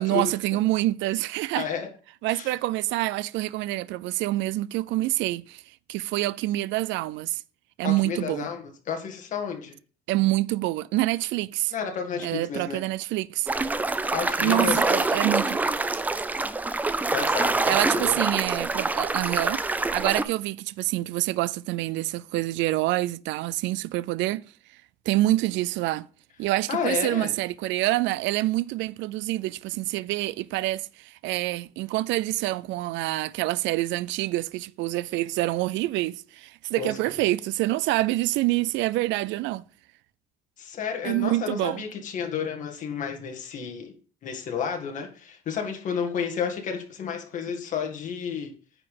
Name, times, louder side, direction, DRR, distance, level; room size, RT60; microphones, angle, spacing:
voice 1, 0.0-1.7 2.2-5.6 5.9-7.4 7.8-8.5 10.1-11.7 12.2-13.5 14.4-15.6 17.7-19.6 19.9-24.4 25.1-26.1 26.4-39.6 41.0-41.8, right 17 dB, 75° right, 0.4 m, -26 dB
voice 2, 1.5-1.9 2.3-2.5 7.8-9.8 11.7-12.8 14.1-14.8 17.1-18.2 26.7-27.3 36.8-36.9 40.6-43.9 44.2-48.5, left 7 dB, 40° left, 1.8 m, -31 dB
sound 1, 13.5-20.2, right 3 dB, 10° right, 0.4 m, -25 dB
9.6 x 5.0 x 5.3 m
cardioid pair, 160°, 19 cm